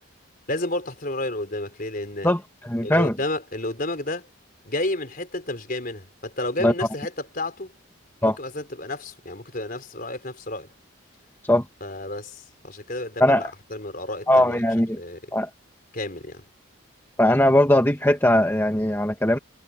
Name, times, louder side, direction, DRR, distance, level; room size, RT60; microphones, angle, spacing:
voice 1, 0.5-2.3 2.8-4.3 4.6-7.7 8.2-10.7 11.8-14.6 15.0-15.2 15.9-16.4, left 1 dB, 45° left, 4.5 m, -31 dB
voice 2, 2.2-3.2 6.6-6.7 8.2-8.4 11.4-11.6 13.2-13.5 14.3-15.0 15.3-15.5 17.2-19.4, left 1 dB, 10° left, 1.4 m, -20 dB
head